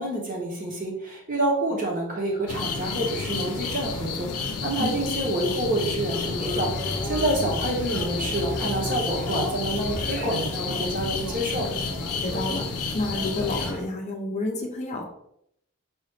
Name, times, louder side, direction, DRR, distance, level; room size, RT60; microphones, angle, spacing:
voice 1, 0.0-11.7, right 1 dB, 35° right, -1 dB, 1.1 m, -28 dB
sound 1, 2.5-13.7, left 4 dB, 90° left, 0.5 m, -31 dB
sound 2, 6.1-13.9, left 1 dB, 5° left, 0.9 m, -35 dB
voice 2, 12.2-12.7 12.9-15.0, left 2 dB, 30° left, 2 dB, 0.5 m, -29 dB
4.7 x 2.6 x 3.2 m, 0.75 s
head